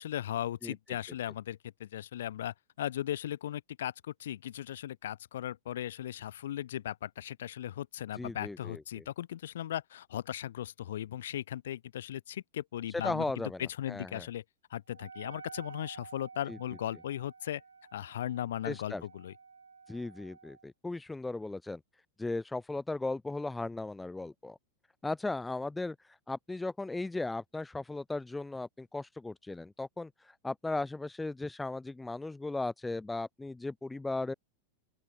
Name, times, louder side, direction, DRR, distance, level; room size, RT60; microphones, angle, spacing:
voice 1, 0.0-13.2 13.6-14.4 14.7-17.6 17.9-19.3, left 11 dB, 60° left, 4.5 m, -37 dB
voice 2, 8.2-9.0 12.9-13.6 13.9-14.3 16.5-16.6 18.6-19.0 19.9-21.8 22.2-24.6 25.0-26.0 26.3-34.3, left 2 dB, 10° left, 1.0 m, -36 dB
Wind instrument woodwind instrument, 14.9-20.7, right 5 dB, 75° right, 4.0 m, -52 dB
open air
figure-of-eight pair, 90°, 0 cm